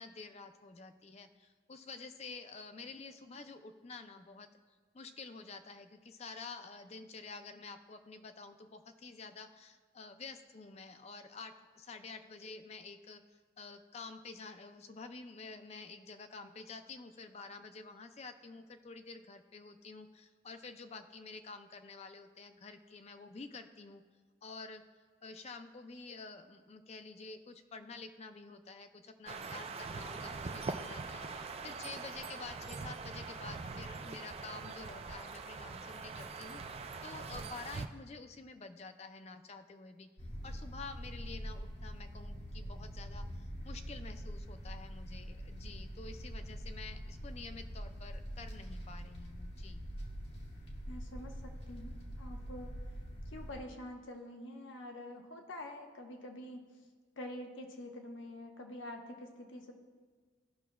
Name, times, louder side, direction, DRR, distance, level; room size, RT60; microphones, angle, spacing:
voice 1, 0.0-4.5 4.9-13.2 13.6-24.0 24.4-24.8 25.2-40.1 40.4-49.8, left 4 dB, 35° left, 8 dB, 0.4 m, -49 dB
sound 1, 29.3-37.9, right 4 dB, 30° right, 0.3 m, -43 dB
sound 2, 40.2-53.6, equal, 60° left, 1.2 m, -44 dB
voice 2, 50.8-52.7 53.3-56.6 57.2-59.7, left 1 dB, 85° left, 3 dB, 1.0 m, -46 dB
16.0 x 6.0 x 2.3 m, 1.5 s
head